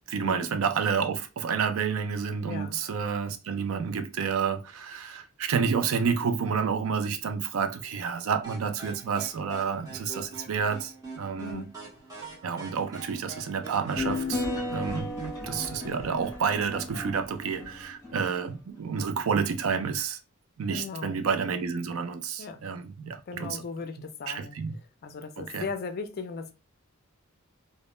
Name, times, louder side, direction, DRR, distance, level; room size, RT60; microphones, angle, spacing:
voice 1, 0.1-11.6 12.4-15.1 15.4-20.2 20.6-23.6 24.3-24.7 25.4-25.7, right 6 dB, 75° right, 0.4 m, -29 dB
voice 2, 2.5-2.8 11.4-11.7 20.7-21.2 22.4-22.6 23.3-24.6 25.0-26.5, left 4 dB, 45° left, 0.4 m, -37 dB
sound 1, 8.4-16.0, right 3 dB, 15° right, 0.8 m, -44 dB
sound 2, 14.0-18.5, left 2 dB, 15° left, 0.7 m, -34 dB
2.1 x 2.1 x 3.0 m
head